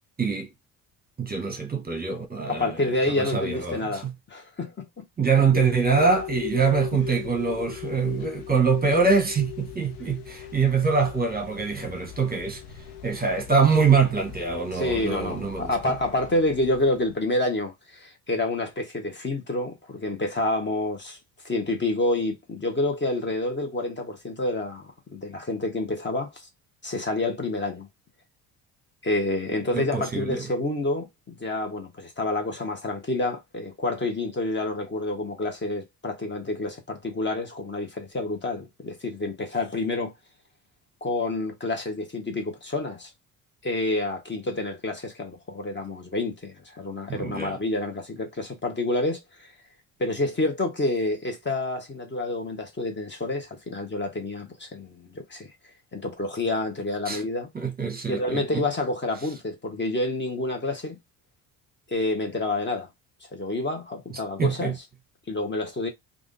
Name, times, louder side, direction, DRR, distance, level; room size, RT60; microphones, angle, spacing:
voice 1, 0.2-0.5 1.2-2.8 3.2-4.1 5.2-12.6 13.0-15.7 29.7-30.5 47.1-47.6 57.1-57.2 57.5-58.6 64.4-64.8, right 5 dB, 20° right, 1.0 m, -24 dB
voice 2, 2.5-5.0 14.7-21.2 21.4-26.3 26.8-27.9 29.0-40.1 41.0-43.1 43.6-49.5 50.0-55.5 55.9-57.5 58.1-61.0 61.9-62.9 63.3-64.8 65.3-65.9, left 2 dB, 25° left, 1.2 m, -28 dB
sound 1, 5.5-17.1, left 11 dB, 75° left, 0.8 m, -38 dB
3.4 x 2.6 x 2.6 m
supercardioid pair, 70°, 41 cm